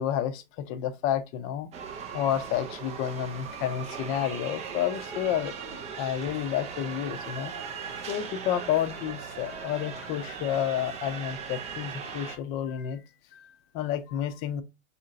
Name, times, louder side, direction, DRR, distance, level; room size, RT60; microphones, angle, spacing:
voice 1, 0.0-1.7 2.1-5.5 6.0-7.5 8.1-13.0 13.3-14.6, left 10 dB, 30° left, 0.5 m, -30 dB
sound 1, 1.7-12.4, right 6 dB, 15° right, 0.4 m, -39 dB
4.3 x 2.7 x 2.3 m
hypercardioid pair, 105°, 41 cm